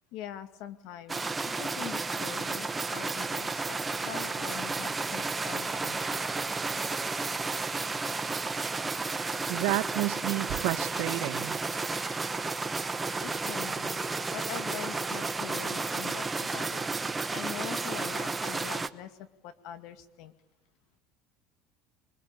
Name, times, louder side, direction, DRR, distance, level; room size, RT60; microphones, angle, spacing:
voice 1, 0.1-1.3 1.6-3.8 4.0-6.0 13.2-14.0 14.3-16.8 17.3-20.3, left 11 dB, 70° left, 10 dB, 2.2 m, -43 dB
sound 1, 1.1-18.9, right 3 dB, 15° right, 1.1 m, -32 dB
voice 2, 9.5-11.6, right 19 dB, 75° right, 12 dB, 1.4 m, -30 dB
23.5 x 22.0 x 8.8 m, 0.96 s
cardioid pair, 120°, 0 cm